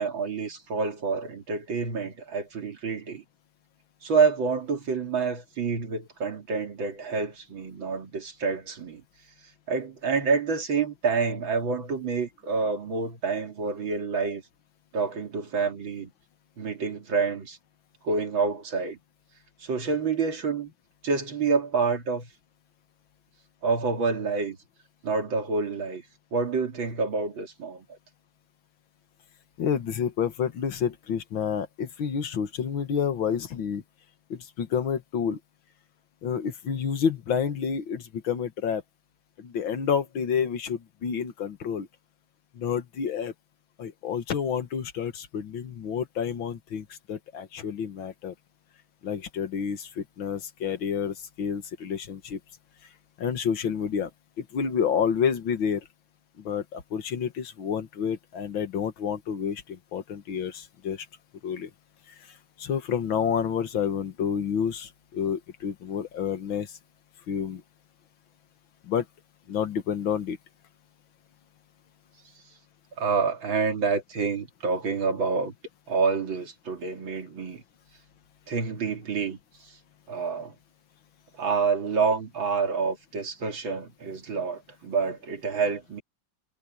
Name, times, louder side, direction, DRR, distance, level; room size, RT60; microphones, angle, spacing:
voice 1, 0.0-3.2 4.0-9.0 9.7-14.4 14.9-16.1 16.6-17.6 18.0-19.0 19.6-20.7 21.0-22.3 23.6-24.6 25.0-26.0 26.3-27.9 73.0-75.5 75.9-77.6 78.5-79.8 80.1-80.5 81.4-86.0, right 4 dB, 85° right, 3.4 m, -28 dB
voice 2, 29.6-33.8 34.3-35.4 36.2-38.8 39.4-41.9 42.5-43.3 43.8-48.3 49.0-52.4 53.2-54.1 54.4-55.8 56.4-61.1 61.4-61.7 62.6-66.7 67.3-67.6 68.9-69.1 69.5-70.4, left 7 dB, 85° left, 2.3 m, -29 dB
omnidirectional pair, 2.1 m